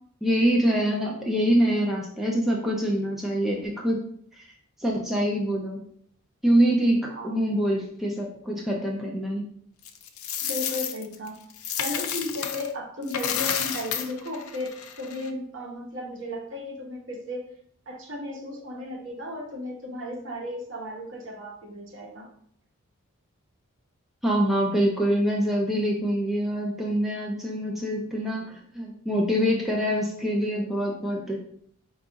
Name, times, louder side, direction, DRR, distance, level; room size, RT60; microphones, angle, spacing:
voice 1, 0.2-4.0 4.3-4.4 4.8-5.8 6.4-9.4 24.2-31.4, equal, ahead, -2 dB, 0.4 m, -25 dB
Coin (dropping), 9.9-12.7 13.0-15.3, left 8 dB, 90° left, 0.5 m, -31 dB
voice 2, 10.4-11.4 11.8-17.4 17.9-22.3, left 1 dB, 60° right, -1 dB, 0.9 m, -35 dB
4.8 x 2.4 x 3.8 m, 0.65 s
head